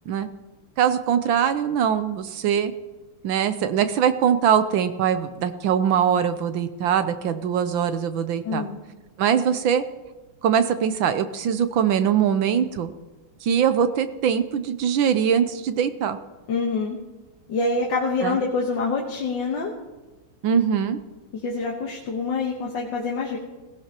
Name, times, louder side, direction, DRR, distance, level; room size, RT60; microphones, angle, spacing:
voice 1, 0.8-2.7 3.2-8.6 9.2-9.8 10.4-12.9 13.4-16.2 18.2-18.4 20.4-21.0, right 8 dB, 70° right, 10 dB, 1.4 m, -22 dB
voice 2, 8.4-8.8 16.5-17.0 17.5-19.7 21.4-23.4, left 3 dB, 60° left, -2 dB, 1.9 m, -26 dB
18.0 x 16.5 x 3.0 m, 1.2 s
omnidirectional pair, 2.4 m